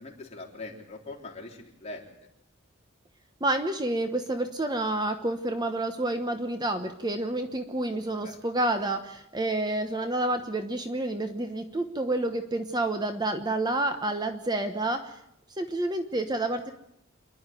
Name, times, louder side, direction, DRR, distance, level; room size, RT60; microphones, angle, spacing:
voice 1, 0.0-2.0 8.2-8.3, left 2 dB, 35° left, -1 dB, 3.7 m, -42 dB
voice 2, 3.4-15.1 15.6-16.7, right 2 dB, 20° right, 7 dB, 1.1 m, -29 dB
27.5 x 11.0 x 9.2 m, 0.76 s
head